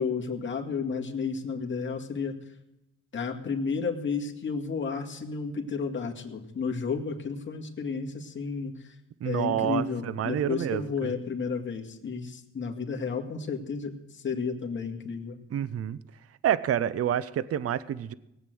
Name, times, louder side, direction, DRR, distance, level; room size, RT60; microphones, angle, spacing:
voice 1, 0.0-2.3 3.1-8.9 9.2-15.4, left 5 dB, 40° left, 2 dB, 2.1 m, -32 dB
voice 2, 9.2-11.1 15.5-16.0 16.4-18.1, right 10 dB, 50° right, 17 dB, 0.7 m, -28 dB
18.0 x 8.2 x 7.7 m, 0.90 s
cardioid pair, 90°, 30 cm